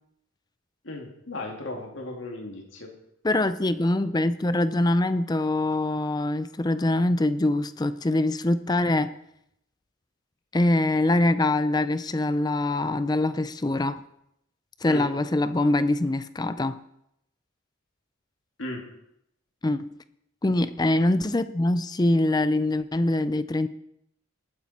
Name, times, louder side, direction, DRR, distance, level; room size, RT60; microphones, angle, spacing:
voice 1, 0.8-2.9 14.9-15.1 18.6-18.8, left 1 dB, 70° left, 1 dB, 2.4 m, -36 dB
voice 2, 3.2-9.1 10.5-14.0 14.8-16.8 19.6-20.0 20.4-23.7, left 2 dB, 20° left, 13 dB, 0.4 m, -24 dB
19.5 x 9.4 x 4.2 m, 0.79 s
head